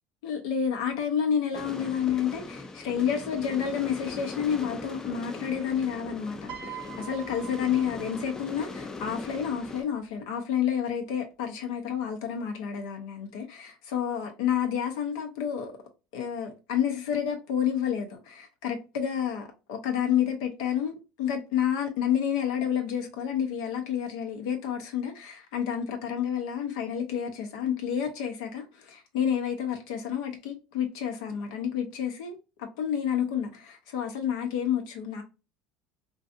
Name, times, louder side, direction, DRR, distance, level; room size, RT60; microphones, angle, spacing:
voice 1, 0.2-15.7 16.1-35.2, left 8 dB, 85° left, 0.6 m, -30 dB
sound 1, 1.5-9.8, left 3 dB, 20° left, 0.3 m, -40 dB
Piano, 6.5-8.8 9.9-10.1, right 10 dB, 60° right, 0.6 m, -44 dB
2.5 x 2.4 x 2.4 m
supercardioid pair, 110°, 3 cm